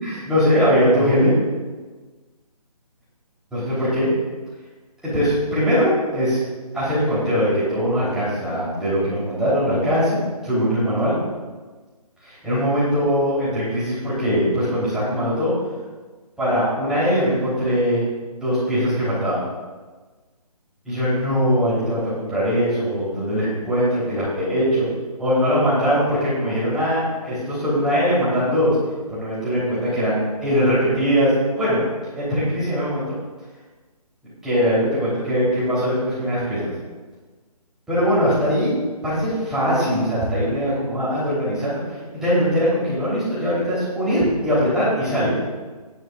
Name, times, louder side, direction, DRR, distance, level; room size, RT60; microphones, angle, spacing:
voice 1, 0.0-1.3 3.5-4.1 5.0-6.4 6.7-10.2 10.4-11.2 12.2-15.5 16.4-18.0 18.3-19.4 20.8-24.9 25.2-28.8 29.1-31.8 32.2-33.2 34.4-36.7 37.9-38.8 39.0-45.3, equal, 5° right, -12 dB, 3.6 m, -21 dB
17.0 x 11.5 x 2.5 m, 1.3 s
hypercardioid pair, 160°, 20 cm